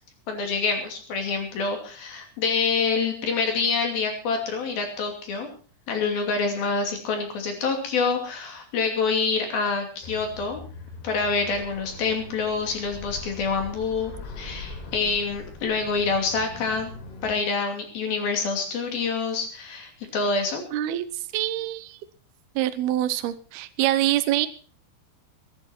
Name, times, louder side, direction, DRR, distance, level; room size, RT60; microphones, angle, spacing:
voice 1, 0.3-5.5 5.9-10.6 11.0-16.9 17.2-20.6, left 4 dB, 55° left, 4 dB, 4.2 m, -26 dB
sound 1, 10.0-17.4, left 3 dB, 70° left, 5.4 m, -41 dB
voice 2, 20.7-22.0 22.6-24.5, right 14 dB, 75° right, 11 dB, 2.3 m, -25 dB
21.0 x 11.0 x 4.5 m, 0.39 s
omnidirectional pair, 5.6 m